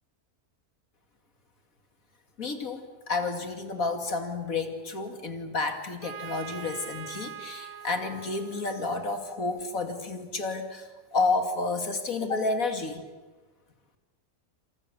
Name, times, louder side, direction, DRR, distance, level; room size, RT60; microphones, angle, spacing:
voice 1, 2.4-13.0, left 3 dB, 60° left, 6 dB, 2.8 m, -30 dB
Trumpet, 6.0-9.7, right 8 dB, 70° right, 1.5 m, -43 dB
29.0 x 27.5 x 7.0 m, 1.3 s
omnidirectional pair, 1.6 m